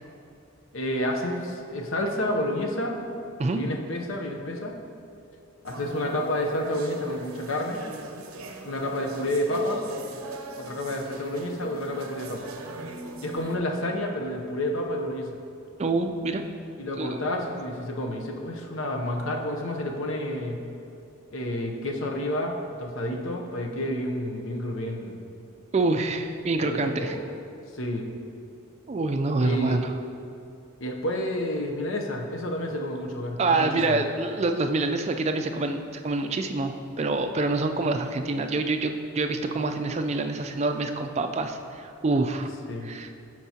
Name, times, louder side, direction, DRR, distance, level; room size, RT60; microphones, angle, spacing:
voice 1, 0.7-3.0 3.5-4.7 5.6-7.8 8.6-9.8 10.6-12.5 13.2-15.4 16.8-20.6 21.3-25.2 26.6-27.2 27.7-28.1 29.4-29.8 30.8-34.0 42.7-42.9, left 1 dB, 65° left, 2 dB, 0.7 m, -30 dB
sound 1, 5.7-13.6, right 2 dB, 80° right, 0.6 m, -40 dB
voice 2, 15.8-16.4 17.0-17.3 25.7-27.2 28.9-29.9 33.4-42.5 42.8-43.2, right 3 dB, 30° right, 6 dB, 0.3 m, -26 dB
12.0 x 4.6 x 2.8 m, 2.7 s
head